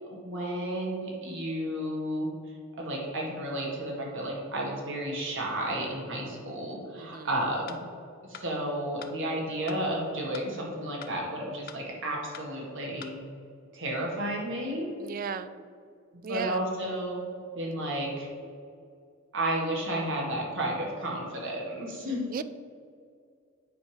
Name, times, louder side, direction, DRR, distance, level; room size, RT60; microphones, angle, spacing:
voice 1, 0.1-2.3 2.8-7.8 8.2-13.2 13.7-14.9 16.1-17.2 17.6-18.3 19.3-22.3, right 1 dB, 65° right, -2 dB, 1.9 m, -32 dB
voice 2, 6.9-7.3 15.0-15.5 16.2-16.6 22.3-22.4, right 6 dB, 40° right, 13 dB, 0.3 m, -35 dB
sound 1, 7.7-7.8 8.3-8.5 9.0-9.1 9.7-9.8 10.3-10.5 11.0-11.1 11.7-11.8 12.3-12.5 13.0-13.1, left 7 dB, 45° left, 0.5 m, -44 dB
8.9 x 3.5 x 6.3 m, 2.3 s
head